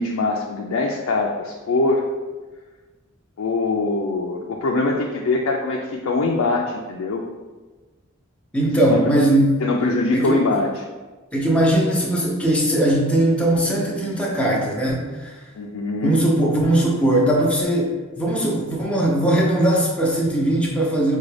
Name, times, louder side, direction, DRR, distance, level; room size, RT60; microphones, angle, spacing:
voice 1, 0.0-2.1 3.4-7.2 8.9-9.1 9.6-10.7 15.6-16.2, left 3 dB, 85° left, 0 dB, 0.4 m, -23 dB
voice 2, 8.5-9.6 10.1-10.4 11.3-15.4 16.0-21.2, right 1 dB, 5° left, -3 dB, 0.7 m, -19 dB
4.9 x 2.3 x 3.2 m, 1.3 s
head